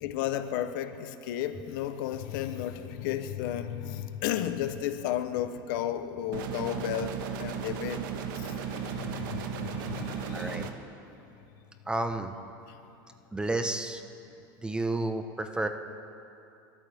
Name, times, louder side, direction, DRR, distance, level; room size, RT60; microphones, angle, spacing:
voice 1, 0.0-8.1 8.3-10.7 12.7-12.8, left 11 dB, 70° left, 10 dB, 0.9 m, -33 dB
sound 1, 6.3-10.7, right 7 dB, 80° right, 1.4 m, -35 dB
voice 2, 10.3-10.7 11.9-12.3 13.3-14.0 14.6-15.7, right 2 dB, 10° right, 6 dB, 1.1 m, -31 dB
29.5 x 13.5 x 3.6 m, 2.8 s
supercardioid pair, 130°, 11 cm